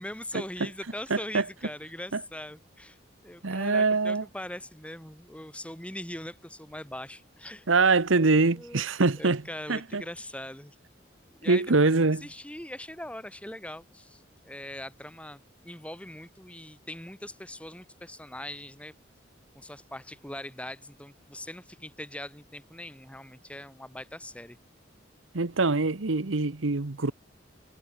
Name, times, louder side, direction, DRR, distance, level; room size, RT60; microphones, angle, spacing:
voice 1, 0.0-3.0 3.2-7.7 8.1-8.8 9.2-10.7 11.4-18.9 19.5-24.6, left 1 dB, 5° left, 4.8 m, -41 dB
voice 2, 1.1-1.4 2.1-2.2 3.4-4.2 7.7-9.4 9.7-10.0 11.5-12.3 25.3-27.1, right 3 dB, 85° right, 1.1 m, -24 dB
head